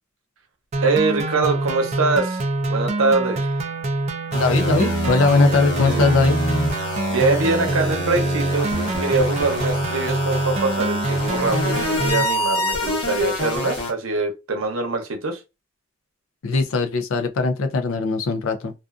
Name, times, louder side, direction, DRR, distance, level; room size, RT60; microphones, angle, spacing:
sound 1, 0.7-12.2, right 2 dB, 30° right, 0.3 m, -25 dB
voice 1, 0.8-2.4 2.7-3.5 5.8-6.0 7.1-15.4, right 3 dB, 80° right, 0.7 m, -23 dB
voice 2, 4.3-6.4 16.4-18.7, left 3 dB, 80° left, 0.5 m, -19 dB
sound 2, 4.3-13.9, left 1 dB, 55° left, 1.0 m, -26 dB
2.5 x 2.4 x 2.4 m
head